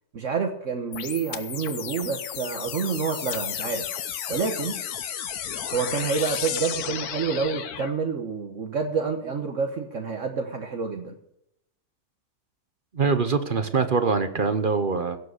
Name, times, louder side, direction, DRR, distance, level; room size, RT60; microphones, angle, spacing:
voice 1, 0.1-3.9 4.3-4.8 5.7-11.2, right 5 dB, 55° right, 4 dB, 1.4 m, -28 dB
sound 1, 0.9-7.9, left 9 dB, 80° left, 1.4 m, -33 dB
voice 2, 12.9-15.2, right 4 dB, 40° right, 10 dB, 0.9 m, -23 dB
16.5 x 7.6 x 6.5 m, 0.77 s
omnidirectional pair, 1.6 m